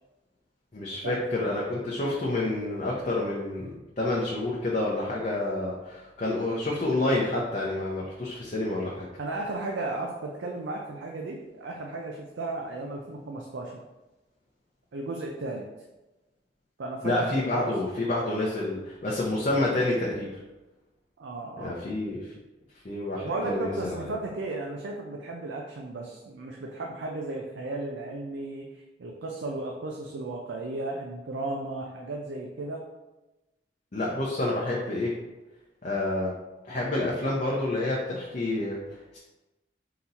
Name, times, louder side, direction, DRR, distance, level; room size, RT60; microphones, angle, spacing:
voice 1, 0.7-3.7 4.0-9.1 17.0-20.3 21.6-22.3 22.8-24.1 33.9-35.1 35.8-36.3 36.7-38.8 39.1-39.2, left 2 dB, 40° left, -4 dB, 0.6 m, -28 dB
voice 2, 9.2-13.8 14.9-15.6 16.8-17.7 21.2-21.9 23.2-32.8, right 2 dB, 80° right, 0 dB, 0.5 m, -35 dB
3.9 x 2.9 x 4.0 m, 1.1 s
head